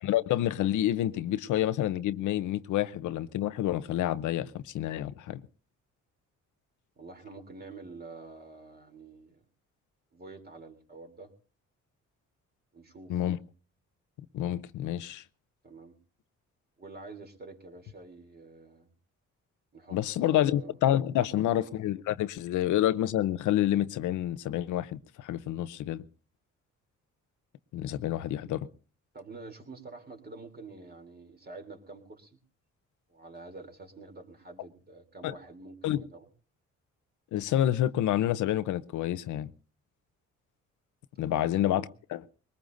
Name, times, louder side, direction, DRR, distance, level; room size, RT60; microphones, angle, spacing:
voice 1, 0.0-5.4 13.1-13.4 14.3-15.2 19.9-26.0 27.7-28.7 35.2-35.3 35.8-36.0 37.3-39.5 41.2-41.8 42.1-42.2, left 12 dB, 80° left, 0.7 m, -28 dB
voice 2, 7.0-9.4 10.1-11.3 12.7-13.2 15.6-15.9 16.8-18.9 19.7-20.8 21.2-21.6 29.1-32.4 33.1-36.3 41.3-41.9, right 3 dB, 30° right, 3.1 m, -47 dB
21.5 x 19.5 x 2.6 m
cardioid pair, 90°, 30 cm